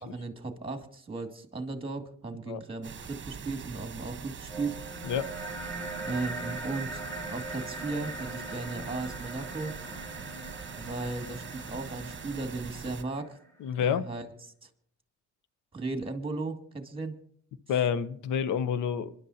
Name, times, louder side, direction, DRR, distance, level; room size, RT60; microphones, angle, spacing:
voice 1, 0.0-4.8 6.0-7.0 7.3-9.7 10.8-13.4 13.8-14.2 14.6-14.7 15.7-17.1, right 3 dB, 20° right, 4 dB, 2.3 m, -36 dB
sound 1, 2.8-13.0, right 6 dB, 40° right, 1.2 m, -43 dB
sound 2, 4.5-13.5, right 2 dB, 10° left, 7.5 m, -41 dB
voice 2, 5.0-5.3 13.6-14.1 17.7-19.1, left 8 dB, 80° left, 14 dB, 0.9 m, -28 dB
26.0 x 11.0 x 2.8 m, 0.62 s
cardioid pair, 90°, 30 cm